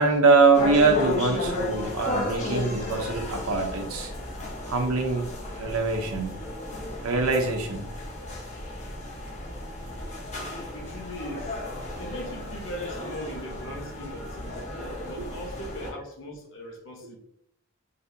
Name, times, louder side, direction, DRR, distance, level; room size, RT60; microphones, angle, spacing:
voice 1, 0.0-4.1 4.7-5.3 5.6-6.4 7.0-7.9 14.7-14.9 15.2-15.3, right 4 dB, 85° right, 4 dB, 0.8 m, -23 dB
sound 1, 0.5-15.9, left 2 dB, 30° left, 1.0 m, -34 dB
voice 2, 10.7-11.6 12.0-14.6 15.1-17.2, equal, 60° left, 0 dB, 0.9 m, -39 dB
4.1 x 3.4 x 2.7 m, 0.69 s
head